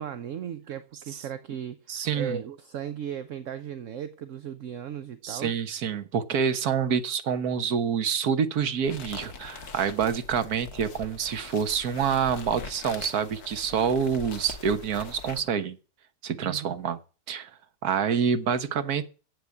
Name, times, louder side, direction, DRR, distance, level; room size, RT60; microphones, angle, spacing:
voice 1, 0.0-5.6 16.4-16.7, right 9 dB, 60° right, 1.0 m, -36 dB
voice 2, 1.9-2.4 5.2-15.8 16.2-17.0 17.3-17.5 17.8-19.1, right 7 dB, 80° right, 1.6 m, -27 dB
sound 1, 8.8-15.5, left 5 dB, 85° left, 1.7 m, -42 dB
9.8 x 8.0 x 8.3 m
omnidirectional pair, 1.6 m